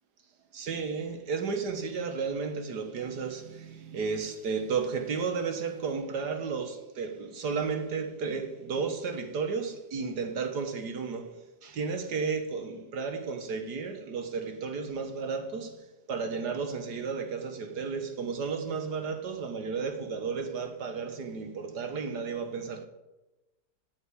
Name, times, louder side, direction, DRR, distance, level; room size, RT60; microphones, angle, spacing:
voice 1, 0.5-22.9, right 5 dB, 85° right, 1.9 m, -33 dB
9.3 x 8.2 x 8.6 m
omnidirectional pair, 1.7 m